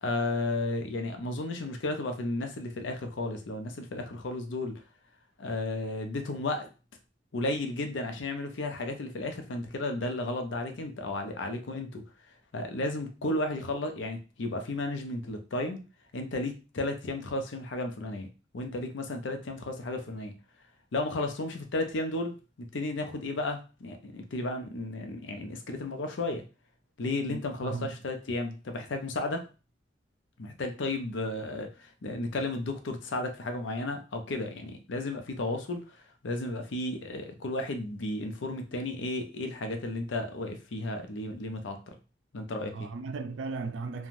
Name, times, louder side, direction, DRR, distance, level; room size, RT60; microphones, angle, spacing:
voice 1, 0.0-4.8 5.4-6.7 7.3-12.0 12.5-15.8 16.1-18.3 18.5-20.3 20.9-26.4 27.0-29.4 30.4-41.9 42.3-42.9, left 2 dB, 85° left, 0.6 m, -33 dB
voice 2, 27.2-27.9 42.7-44.1, right 4 dB, 90° right, 0.4 m, -36 dB
3.1 x 2.3 x 2.5 m
head